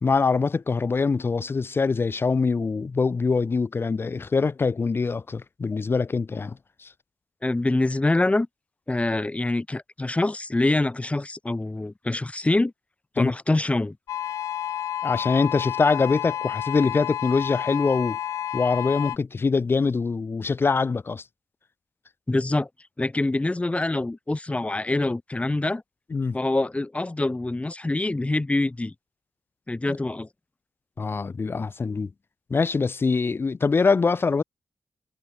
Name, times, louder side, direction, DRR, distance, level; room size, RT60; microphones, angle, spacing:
voice 1, 0.0-6.9 13.2-13.3 15.0-18.2 18.5-21.2 26.1-26.4 29.9-30.0 31.0-32.1 32.5-34.4, left 4 dB, 45° left, 1.2 m, -24 dB
voice 2, 7.4-8.5 8.9-12.7 13.2-14.0 22.3-22.7 23.0-25.8 26.3-28.9 29.7-30.3, left 2 dB, 25° left, 2.6 m, -25 dB
sound 1, 14.1-19.2, left 11 dB, 80° left, 0.6 m, -30 dB
supercardioid pair, 40°, 5 cm